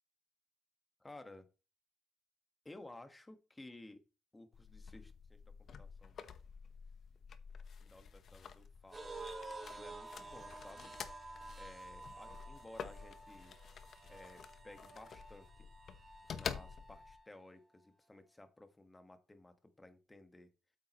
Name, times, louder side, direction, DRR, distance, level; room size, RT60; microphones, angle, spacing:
voice 1, 1.0-1.5 2.6-4.0 4.3-5.4 5.8-6.2 7.8-9.3 9.7-10.9 11.5-13.5 14.1-15.7 16.3-20.5, left 2 dB, 15° left, 8 dB, 1.5 m, -56 dB
sound 1, 4.5-17.2, left 6 dB, 55° left, 1.0 m, -49 dB
sound 2, 8.9-17.3, right 2 dB, 30° right, 2.5 m, -51 dB
8.5 x 7.6 x 3.0 m, 0.32 s
cardioid pair, 90°, 0 cm